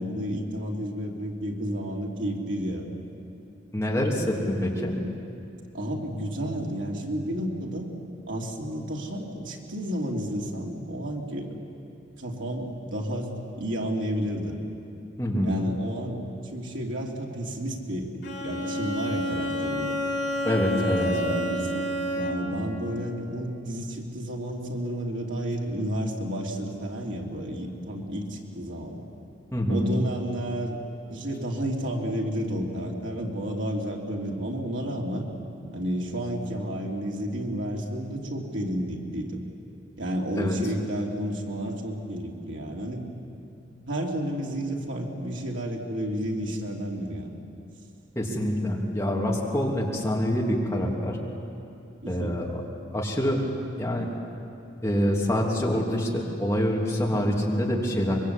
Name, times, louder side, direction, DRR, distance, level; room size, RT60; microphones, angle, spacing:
voice 1, 0.0-2.9 5.7-7.9 8.3-11.6 12.2-13.3 13.6-14.6 15.4-20.0 20.8-21.9 22.1-29.1 29.7-30.8 31.1-35.3 35.7-39.4 40.0-43.0 43.9-47.3 52.0-52.4, equal, 85° right, -1 dB, 3.2 m, -31 dB
voice 2, 3.7-5.0 15.2-15.5 20.4-21.0 29.5-29.9 40.4-40.6 48.1-51.2 52.1-52.5 52.9-53.5 53.8-54.1 54.8-58.1, equal, 15° left, -3 dB, 3.0 m, -26 dB
Bowed string instrument, 18.2-22.6, equal, 75° left, 3.4 m, -29 dB
24.5 x 23.0 x 8.3 m, 2.7 s
head